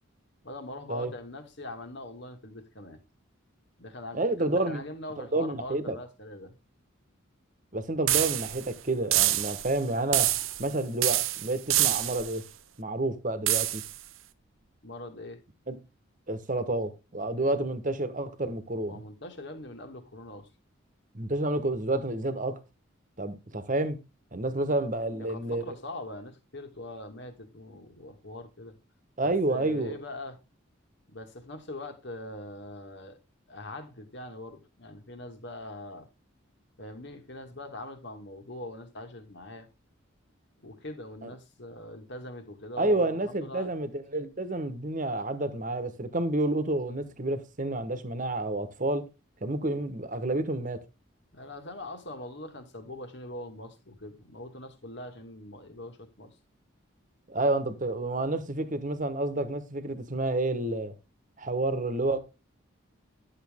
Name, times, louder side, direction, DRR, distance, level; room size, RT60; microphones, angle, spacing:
voice 1, 0.4-3.0 3.8-6.5 14.8-15.4 18.9-20.5 25.2-28.7 29.2-30.4 31.1-33.2 33.5-36.1 36.8-39.7 40.6-43.7 51.3-56.3, left 1 dB, 55° left, 1.9 m, -42 dB
voice 2, 4.1-4.8 5.2-6.0 7.7-10.3 10.6-12.4 12.8-13.8 15.7-15.8 16.3-19.0 21.1-22.6 23.2-24.0 24.3-25.7 29.2-29.9 41.2-41.3 42.8-49.1 49.4-50.8 57.3-60.9 61.4-62.2, right 2 dB, 40° right, 1.2 m, -29 dB
sound 1, 8.1-8.7 9.1-9.7 10.1-10.7 11.0-12.3 13.5-14.0, right 14 dB, 70° right, 0.7 m, -26 dB
11.0 x 7.2 x 3.6 m
head